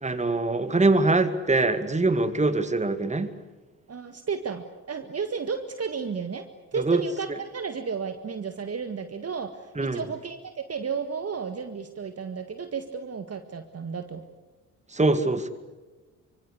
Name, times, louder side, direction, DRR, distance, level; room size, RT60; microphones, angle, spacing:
voice 1, 0.0-3.3 6.7-7.0 9.8-10.0 14.9-15.5, right 2 dB, 15° right, 10 dB, 2.2 m, -23 dB
voice 2, 3.9-6.5 6.7-14.2, right 5 dB, 35° right, 8 dB, 1.7 m, -33 dB
25.5 x 24.5 x 8.3 m, 1.2 s
figure-of-eight pair, 40°, 45 cm